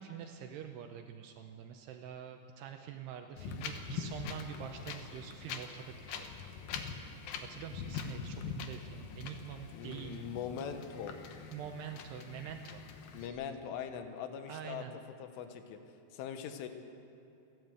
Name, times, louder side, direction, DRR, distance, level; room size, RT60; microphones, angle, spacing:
voice 1, 0.0-6.3 7.5-10.2 11.5-12.8 13.2-13.3 14.5-15.0, right 9 dB, 75° right, 5 dB, 2.5 m, -45 dB
Wind, 3.4-13.3, left 6 dB, 70° left, 2.3 m, -43 dB
voice 2, 9.7-11.2 13.1-14.9 15.2-15.8 16.1-16.7, left 8 dB, 85° left, 7 dB, 3.7 m, -41 dB
29.0 x 11.5 x 8.0 m, 2.9 s
omnidirectional pair, 5.5 m